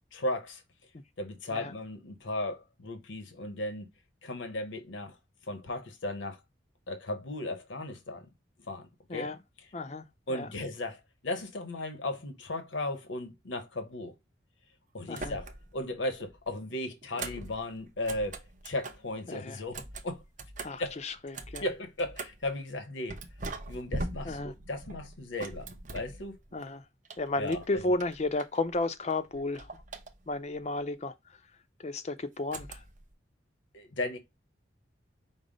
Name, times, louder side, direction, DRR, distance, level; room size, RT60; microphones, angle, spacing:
voice 1, 0.1-0.6 1.2-3.9 4.2-5.2 5.5-6.4 6.9-8.3 8.6-9.3 9.6-9.7 10.3-14.1 14.9-20.2 20.8-21.0 21.6-23.2 23.7-26.4 27.4-27.8 33.7-34.2, left 1 dB, 75° left, 0.8 m, -36 dB
voice 2, 9.7-10.0 10.3-10.5 15.1-15.4 19.3-19.6 20.6-21.6 24.2-24.5 26.5-26.8 27.2-29.7 30.3-31.1 31.8-32.8, left 2 dB, 35° left, 0.5 m, -33 dB
sound 1, 15.1-15.8 16.1-19.1 19.6-22.5 23.1-26.7 27.0-28.8 29.1-30.5 32.5-33.1, right 2 dB, 40° right, 0.6 m, -42 dB
5.4 x 2.0 x 4.9 m
head